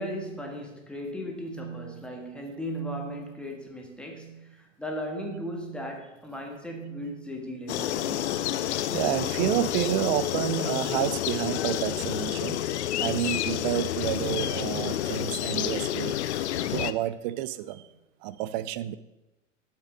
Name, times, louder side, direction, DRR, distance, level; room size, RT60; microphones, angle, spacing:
voice 1, 0.0-8.3, equal, 5° left, 1.5 m, -36 dB
sound 1, 7.7-16.9, left 12 dB, 60° left, 0.5 m, -29 dB
voice 2, 8.9-12.6 13.0-17.9 18.2-18.9, right 14 dB, 40° right, 0.4 m, -30 dB
7.4 x 5.9 x 4.8 m
figure-of-eight pair, 85°, 38 cm